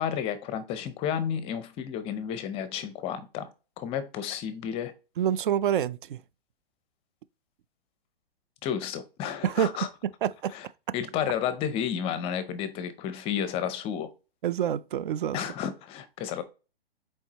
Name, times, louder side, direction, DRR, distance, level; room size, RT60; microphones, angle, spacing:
voice 1, 0.0-3.5 3.8-4.9 8.6-9.9 10.5-10.6 10.9-14.1 15.3-16.4, left 8 dB, 20° left, 0.6 m, -31 dB
voice 2, 5.2-6.2 9.4-9.7 10.2-10.5 14.4-15.4, right 9 dB, 55° right, 0.4 m, -27 dB
7.1 x 4.6 x 2.9 m
hypercardioid pair, 130°, 31 cm